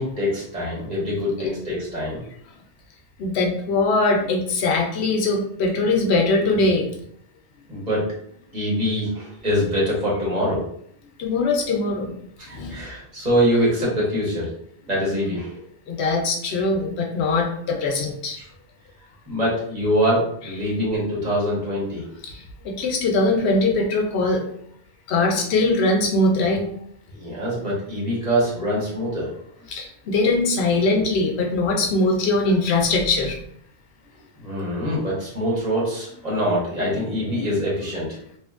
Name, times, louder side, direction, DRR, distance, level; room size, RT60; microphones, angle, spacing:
voice 1, 0.0-2.2 7.7-8.0 8.5-10.6 12.4-14.5 14.8-15.6 18.4-18.5 19.3-22.1 27.1-29.3 34.4-38.2, equal, 40° right, -6 dB, 1.1 m, -24 dB
voice 2, 3.2-6.9 11.2-12.1 12.5-12.8 15.9-18.4 22.2-24.4 25.1-26.7 27.9-28.0 29.7-33.4, left 2 dB, 75° left, 1 dB, 0.8 m, -21 dB
2.9 x 2.5 x 2.4 m, 0.68 s
omnidirectional pair, 1.1 m